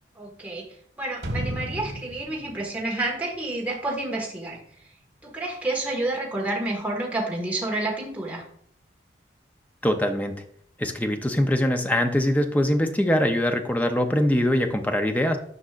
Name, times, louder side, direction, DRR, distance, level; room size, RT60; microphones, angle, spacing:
voice 1, 0.2-0.7 1.0-4.6 5.2-8.4, right 2 dB, 10° right, -3 dB, 1.6 m, -29 dB
sound 1, 1.2-4.0 4.4-4.5, right 1 dB, 85° right, 1.4 m, -34 dB
voice 2, 9.8-10.4 10.8-15.4, left 1 dB, 10° left, 5 dB, 0.6 m, -23 dB
10.0 x 5.3 x 2.5 m, 0.63 s
head